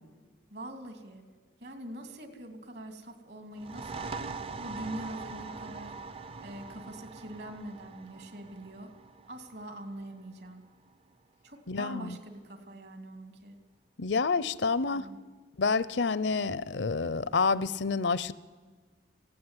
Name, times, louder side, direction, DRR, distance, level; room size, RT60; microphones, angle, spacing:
voice 1, 0.5-1.2 1.6-4.1 4.6-5.9 6.4-8.9 9.3-10.6 11.4-13.6 14.9-15.2, right 1 dB, 65° right, 7 dB, 2.8 m, -43 dB
sound 1, 3.5-10.9, right 4 dB, 30° right, 0.5 m, -43 dB
voice 2, 11.7-12.2 14.0-15.1 15.6-18.3, left 4 dB, 75° left, 18 dB, 0.7 m, -28 dB
18.0 x 16.0 x 9.8 m, 1.5 s
head